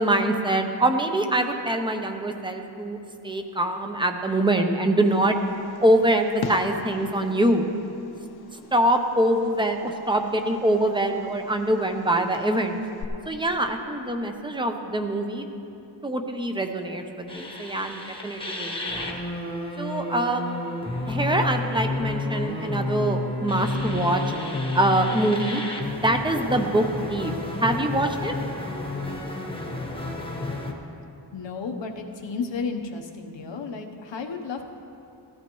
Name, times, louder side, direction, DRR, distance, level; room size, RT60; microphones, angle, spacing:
voice 1, 0.0-3.0 3.2-5.4 5.8-7.7 8.5-12.8 13.3-15.5 16.0-19.1 19.8-20.6 21.1-24.2 24.7-25.6 25.9-27.3 27.6-28.3, right 1 dB, 10° right, 5 dB, 0.7 m, -24 dB
Fireworks, 5.0-13.0, left 4 dB, 60° left, 0.8 m, -41 dB
sound 1, 17.3-30.7, left 2 dB, 10° left, 1.0 m, -31 dB
voice 2, 31.3-34.6, left 4 dB, 85° left, 4 dB, 1.0 m, -33 dB
16.5 x 13.5 x 3.1 m, 2.8 s
wide cardioid pair, 165°, 43 cm